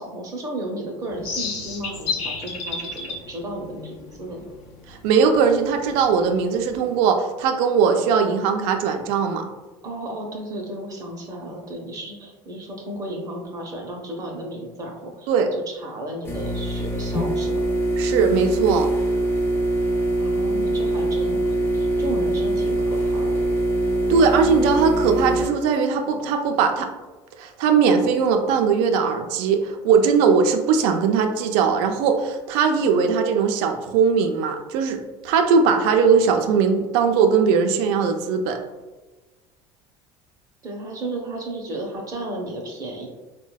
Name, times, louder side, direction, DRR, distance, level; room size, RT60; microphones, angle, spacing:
voice 1, 0.0-4.5 9.8-17.6 20.2-23.4 40.6-43.1, right 1 dB, 35° right, 1 dB, 0.6 m, -34 dB
sound 1, 1.1-7.0, left 4 dB, 65° left, 0.6 m, -33 dB
voice 2, 4.9-9.5 15.3-15.5 18.0-18.9 24.1-26.9 27.4-38.6, right 6 dB, 80° right, 5 dB, 0.4 m, -20 dB
sound 2, 16.2-25.5, right 1 dB, 20° left, 0.5 m, -23 dB
3.9 x 2.1 x 2.2 m, 1.2 s
supercardioid pair, 105°, 11 cm